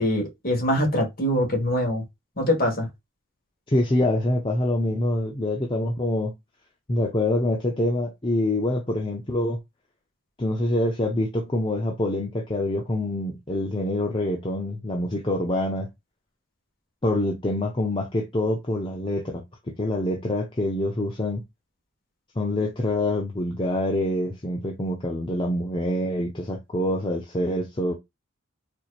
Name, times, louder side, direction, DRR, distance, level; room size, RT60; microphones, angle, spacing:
voice 1, 0.0-2.0 2.4-2.9, left 1 dB, 40° left, 1.7 m, -23 dB
voice 2, 3.7-6.3 6.9-9.6 10.4-15.9 17.0-21.4 22.4-27.9, left 1 dB, 25° left, 0.6 m, -25 dB
4.4 x 2.8 x 2.4 m
head